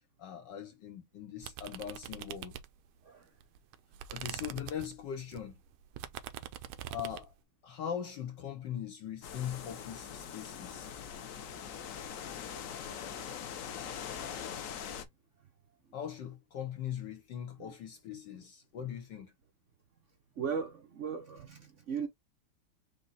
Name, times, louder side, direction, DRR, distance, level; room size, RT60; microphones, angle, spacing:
voice 1, 0.2-2.6 4.1-5.6 6.9-7.3 7.6-10.9 15.9-19.3, left 9 dB, 65° left, 1.3 m, -41 dB
sound 1, 1.4-3.0 3.4-7.3, right 11 dB, 85° right, 1.4 m, -44 dB
sound 2, 9.2-15.0, left 8 dB, 90° left, 0.7 m, -42 dB
voice 2, 13.1-13.4 14.2-14.3 17.6-17.7 18.3-18.4 20.4-22.1, right 6 dB, 65° right, 0.7 m, -38 dB
5.2 x 2.2 x 3.9 m
omnidirectional pair, 2.3 m